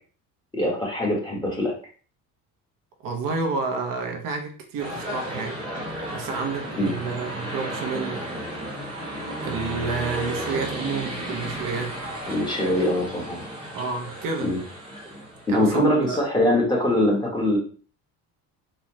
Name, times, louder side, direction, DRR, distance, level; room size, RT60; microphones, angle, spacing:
voice 1, 0.5-1.7 6.8-7.0 12.3-13.4 14.4-14.6 15.5-17.6, left 1 dB, 10° left, -3 dB, 1.3 m, -22 dB
voice 2, 3.0-5.6 6.1-8.2 9.4-12.0 13.7-14.5 15.5-16.2, right 4 dB, 65° right, 3 dB, 0.9 m, -30 dB
sound 1, 4.8-15.8, right 1 dB, 15° right, 1.1 m, -33 dB
4.1 x 2.3 x 3.1 m, 0.41 s
cardioid pair, 130°, 36 cm